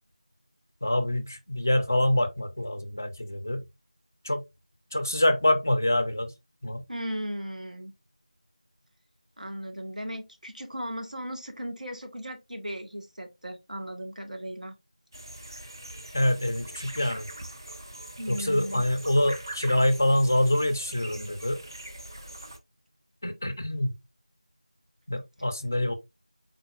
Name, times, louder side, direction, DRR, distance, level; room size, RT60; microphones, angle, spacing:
voice 1, 0.8-3.6 4.2-4.4 4.9-6.3 6.6-6.8 16.1-17.3 18.3-21.6 23.2-23.9 25.1-25.9, left 1 dB, 20° left, 0.4 m, -25 dB
voice 2, 6.9-7.9 9.4-14.8 18.2-18.8, equal, 90° right, 1.2 m, -36 dB
sound 1, 15.1-22.6, right 1 dB, 35° right, 0.6 m, -42 dB
4.0 x 3.9 x 2.3 m
figure-of-eight pair, 175°, 4 cm